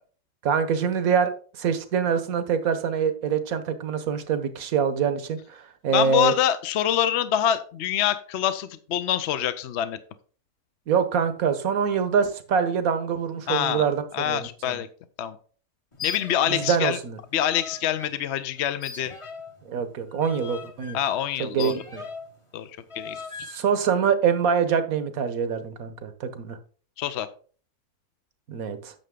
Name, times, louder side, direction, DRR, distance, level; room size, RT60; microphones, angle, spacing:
voice 1, 0.4-1.3 1.6-6.3 10.9-14.8 16.5-17.2 19.6-21.0 21.4-22.0 23.5-26.6 28.5-28.9, right 7 dB, 70° right, 10 dB, 1.4 m, -25 dB
voice 2, 5.9-10.0 13.5-13.8 14.1-14.9 15.2-15.4 16.0-17.0 17.3-19.1 20.9-21.7 22.5-23.2 27.0-27.3, left 11 dB, 60° left, 12 dB, 0.8 m, -25 dB
sound 1, 15.9-16.8 17.1-18.1 18.8-22.4 22.9-23.6, left 5 dB, 25° left, 0.9 m, -39 dB
9.2 x 6.6 x 3.7 m, 0.42 s
omnidirectional pair, 1.6 m